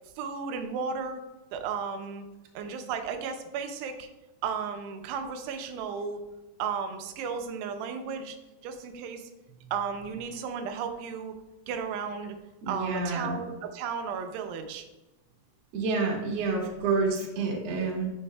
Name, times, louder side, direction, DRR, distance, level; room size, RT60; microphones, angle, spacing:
voice 1, 0.2-1.2 1.5-2.2 2.6-4.1 4.4-6.2 6.6-8.4 8.6-9.3 9.7-11.4 11.7-12.4 12.7-14.9, right 6 dB, 90° right, 6 dB, 2.9 m, -34 dB
voice 2, 12.6-13.4 15.7-18.1, right 3 dB, 55° right, -2 dB, 1.8 m, -28 dB
12.5 x 5.7 x 2.3 m, 1.0 s
omnidirectional pair, 4.7 m